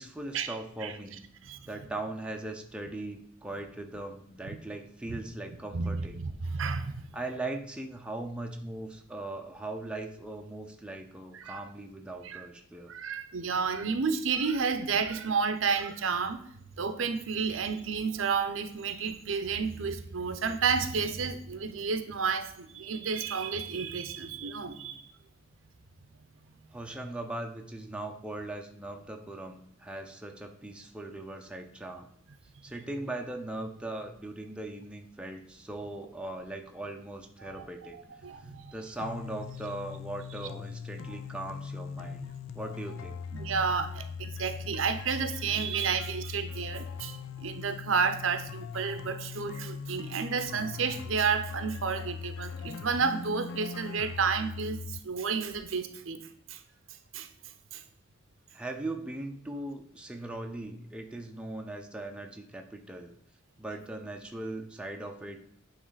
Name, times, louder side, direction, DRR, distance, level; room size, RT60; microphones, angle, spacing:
voice 1, 0.0-1.2 1.6-6.2 7.1-12.9 26.7-32.1 32.6-38.0 38.7-43.2 58.5-63.1 63.6-65.4, right 2 dB, 5° right, 3 dB, 0.5 m, -39 dB
voice 2, 5.7-7.0 11.3-11.6 12.2-12.4 12.9-16.4 16.8-25.1 37.4-37.7 37.9-38.7 42.0-42.1 43.3-56.6 57.1-57.3 57.7-57.8, right 5 dB, 70° right, 10 dB, 0.6 m, -31 dB
sound 1, 39.0-55.0, left 6 dB, 70° left, 0.4 m, -40 dB
9.3 x 3.2 x 3.9 m, 0.67 s
head